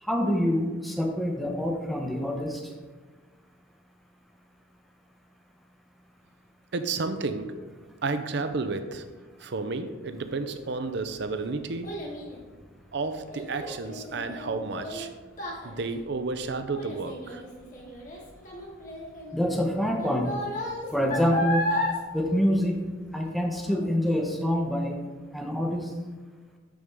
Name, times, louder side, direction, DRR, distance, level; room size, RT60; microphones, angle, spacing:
voice 1, 0.0-2.6 19.3-20.3 20.9-21.7 22.1-22.8 23.1-25.0 25.3-25.9, equal, ahead, 1 dB, 0.7 m, -26 dB
voice 2, 6.7-7.6 8.0-9.0 9.4-12.1 12.9-15.1 15.6-17.4, right 3 dB, 60° right, 9 dB, 0.5 m, -31 dB
Child speech kid speaking, 10.7-23.3 23.7-24.1 24.6-24.7, left 1 dB, 40° left, 1.6 m, -34 dB
6.9 x 6.6 x 3.6 m, 1.4 s
head